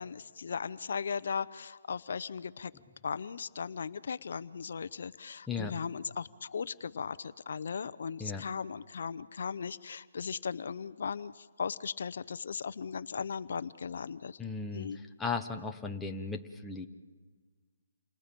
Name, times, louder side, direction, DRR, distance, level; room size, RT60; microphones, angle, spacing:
voice 1, 0.0-2.7 3.0-14.4 14.7-15.0, left 6 dB, 60° left, 15 dB, 0.6 m, -37 dB
voice 2, 14.4-14.9 15.2-16.9, left 4 dB, 5° left, 2 dB, 0.8 m, -36 dB
29.0 x 26.5 x 5.2 m, 1.5 s
hypercardioid pair, 165°, 0 cm